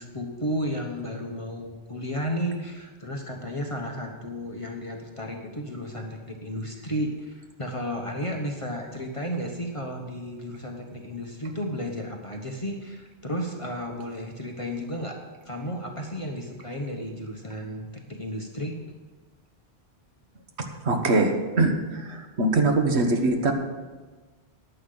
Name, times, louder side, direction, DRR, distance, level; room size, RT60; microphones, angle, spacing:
voice 1, 0.0-15.2 15.4-18.8, equal, 30° left, 2 dB, 1.1 m, -33 dB
voice 2, 20.6-23.5, right 2 dB, 80° right, 4 dB, 1.5 m, -23 dB
14.5 x 10.0 x 3.9 m, 1.3 s
omnidirectional pair, 1.1 m